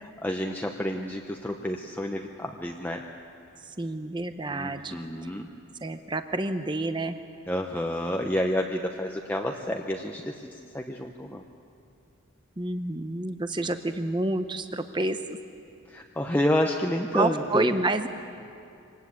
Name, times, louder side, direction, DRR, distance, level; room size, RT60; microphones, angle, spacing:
voice 1, 0.2-3.0 4.5-5.5 7.5-11.4 13.6-13.7 15.9-17.7, left 1 dB, 10° left, 2 dB, 0.8 m, -29 dB
voice 2, 3.6-5.0 5.8-7.2 12.6-15.4 17.1-18.1, right 2 dB, 20° right, 9 dB, 0.7 m, -29 dB
25.0 x 19.5 x 8.4 m, 2.6 s
head